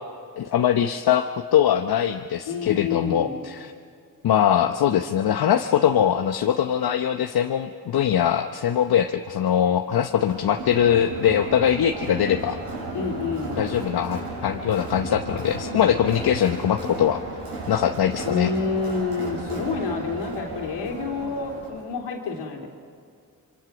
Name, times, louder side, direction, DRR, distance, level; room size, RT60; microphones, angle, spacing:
voice 1, 0.4-3.7 4.2-12.6 13.6-17.2 17.7-18.5, left 9 dB, 65° left, 6 dB, 1.0 m, -22 dB
voice 2, 2.4-3.4 12.9-13.7 18.2-22.7, left 4 dB, 80° left, 1 dB, 3.4 m, -28 dB
Crowd, 10.3-21.8, right 2 dB, 75° right, 7.5 m, -34 dB
27.0 x 23.5 x 6.2 m, 2.3 s
supercardioid pair, 55°, 41 cm